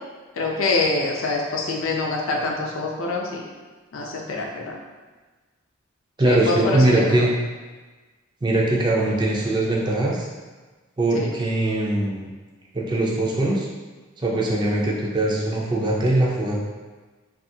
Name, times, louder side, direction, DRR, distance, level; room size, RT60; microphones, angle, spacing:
voice 1, 0.4-3.5 3.9-4.8 6.2-7.2 11.1-11.3 14.3-14.5, left 3 dB, 85° left, 0 dB, 0.5 m, -25 dB
voice 2, 6.2-7.3 8.4-10.3 11.0-12.3 12.7-13.7 14.2-16.6, right 2 dB, 20° right, -3 dB, 0.4 m, -21 dB
2.7 x 2.4 x 2.7 m, 1.3 s
head